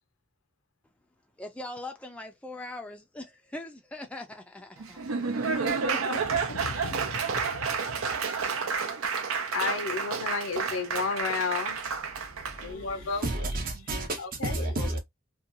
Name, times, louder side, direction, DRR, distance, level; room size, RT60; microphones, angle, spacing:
voice 1, 1.4-5.2, left 2 dB, 5° left, 0.3 m, -41 dB
Laughter / Applause, 4.8-12.7, right 5 dB, 90° right, 0.5 m, -30 dB
voice 2, 5.4-8.0 9.3-11.9 12.6-13.3 14.2-15.0, left 5 dB, 75° left, 0.5 m, -34 dB
voice 3, 12.2-15.0, right 2 dB, 45° right, 0.6 m, -32 dB
2.7 x 2.2 x 2.5 m
head